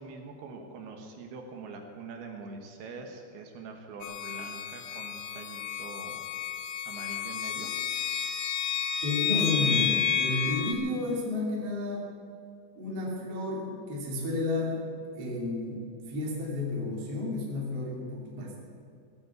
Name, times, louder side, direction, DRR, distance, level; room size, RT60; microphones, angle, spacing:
voice 1, 0.0-6.3 6.8-7.7, right 4 dB, 70° right, 3 dB, 2.9 m, -44 dB
sound 1, 4.0-10.7, left 8 dB, 75° left, 2.3 m, -31 dB
voice 2, 9.0-12.1 12.8-14.8 15.1-15.8 16.1-18.6, left 2 dB, 40° right, -3 dB, 3.1 m, -31 dB
17.0 x 9.1 x 8.1 m, 2.3 s
omnidirectional pair, 5.4 m